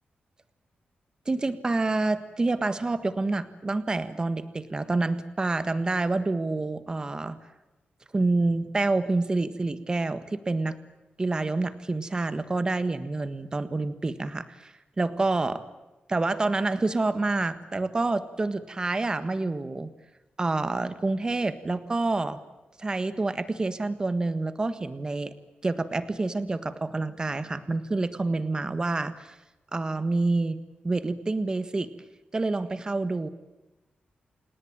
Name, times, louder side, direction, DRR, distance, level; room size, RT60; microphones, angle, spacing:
voice 1, 1.2-7.4 8.1-10.8 11.2-15.6 16.1-19.9 20.4-22.4 22.8-25.3 25.6-29.4 29.7-30.6 30.8-31.9 32.3-33.3, right 3 dB, 25° right, 12 dB, 1.6 m, -27 dB
28.5 x 18.5 x 9.0 m, 1.0 s
wide cardioid pair, 160°, 3 cm